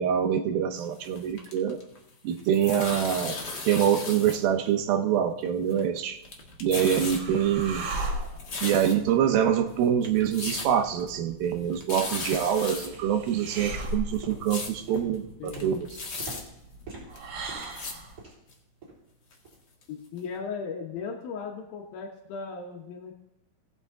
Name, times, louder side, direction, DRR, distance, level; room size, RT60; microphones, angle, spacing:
voice 1, 0.0-1.8 2.2-3.4 3.7-6.2 6.6-7.9 8.6-15.9, right 9 dB, 85° right, 6 dB, 2.8 m, -25 dB
sound 1, 0.8-2.0 2.3-4.4 4.6-4.7 5.5-6.0 6.2-7.2 7.6-9.2 9.7-9.8 10.0-10.7 11.0-11.1 11.4-11.5 11.7-12.9 13.3-13.4 13.7-14.7 15.1-15.2 15.4-16.4 17.1-17.2 17.6-17.9 18.5-18.6 19.3-19.4 19.8-19.9 20.2-20.3, left 3 dB, 45° left, 1.4 m, -36 dB
sound 2, 6.1-18.2, right 1 dB, 55° right, 1.6 m, -39 dB
sound 3, 10.2-10.3 10.8-11.0 11.5-11.6 12.2-12.5 12.8-13.3 13.6-18.5 18.8-19.1 19.5-19.6 20.2-20.3, right 3 dB, 25° right, 4.2 m, -46 dB
voice 2, 15.4-15.7 19.9-23.1, left 5 dB, 80° left, 1 dB, 2.9 m, -37 dB
18.0 x 6.9 x 3.6 m, 0.84 s
omnidirectional pair, 4.1 m